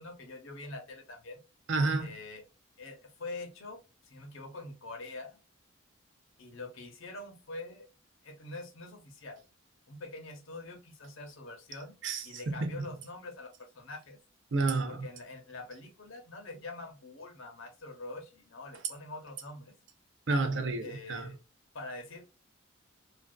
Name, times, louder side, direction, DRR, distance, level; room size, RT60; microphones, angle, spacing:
voice 1, 0.0-1.4 2.0-2.4 2.8-5.4 6.4-7.9 8.2-9.4 9.9-11.9 12.2-14.2 14.9-19.7 20.8-21.4 21.7-22.4, left 2 dB, 75° left, 0.7 m, -45 dB
voice 2, 1.7-2.1 12.0-12.7 14.5-15.1 20.3-21.2, right 3 dB, 60° right, 0.5 m, -30 dB
2.4 x 2.2 x 2.2 m
head